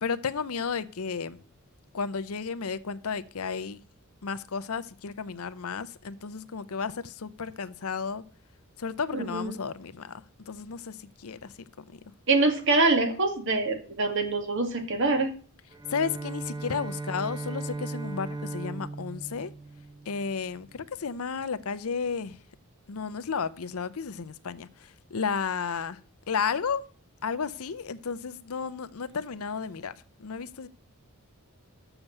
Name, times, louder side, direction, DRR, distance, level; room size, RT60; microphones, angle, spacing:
voice 1, 0.0-1.4 1.9-3.8 4.2-8.2 8.8-10.2 10.5-11.5 11.9-12.0 15.9-19.5 20.1-22.4 22.9-26.0 26.3-26.8 27.2-29.9 30.2-30.7, left 5 dB, 80° left, 0.7 m, -33 dB
voice 2, 9.1-9.5 12.3-15.3, right 3 dB, 60° right, 2.1 m, -25 dB
Bowed string instrument, 15.7-20.7, right 2 dB, 20° right, 0.8 m, -37 dB
7.2 x 6.9 x 8.0 m
head